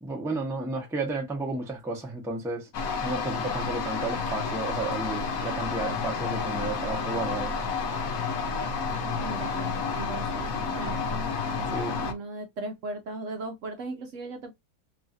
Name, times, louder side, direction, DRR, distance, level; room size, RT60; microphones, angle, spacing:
voice 1, 0.0-2.7 3.0-7.5 11.7-12.0, right 3 dB, 5° right, 0.6 m, -32 dB
sound 1, 2.7-12.1, left 5 dB, 65° left, 1.2 m, -30 dB
voice 2, 9.2-10.5 10.7-11.3 12.0-14.6, right 3 dB, 65° right, 0.9 m, -38 dB
3.1 x 2.4 x 2.5 m
omnidirectional pair, 1.7 m